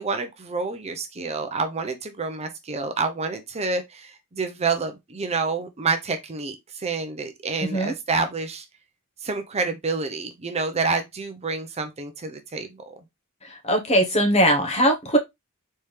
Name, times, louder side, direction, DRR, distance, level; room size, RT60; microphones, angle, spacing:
voice 1, 0.0-8.6 9.2-12.9, right 4 dB, 30° right, 0.6 m, -28 dB
voice 2, 13.6-15.2, equal, 30° left, 1.2 m, -20 dB
4.3 x 3.6 x 3.2 m
head